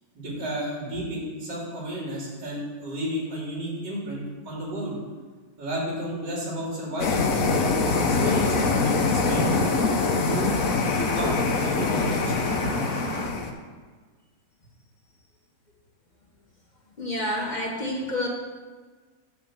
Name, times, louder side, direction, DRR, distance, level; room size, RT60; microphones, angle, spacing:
voice 1, 0.1-5.0 5.6-9.0 9.3-9.6 10.3-10.6 10.9-12.5, right 1 dB, 75° right, -4 dB, 3.0 m, -32 dB
sound 1, 7.0-13.5, left 4 dB, 60° left, 1.1 m, -24 dB
sound 2, 7.8-13.3, left 1 dB, 20° left, 1.6 m, -33 dB
voice 2, 17.0-18.3, left 1 dB, 35° left, -1 dB, 0.7 m, -28 dB
10.5 x 3.7 x 7.3 m, 1.4 s
omnidirectional pair, 1.9 m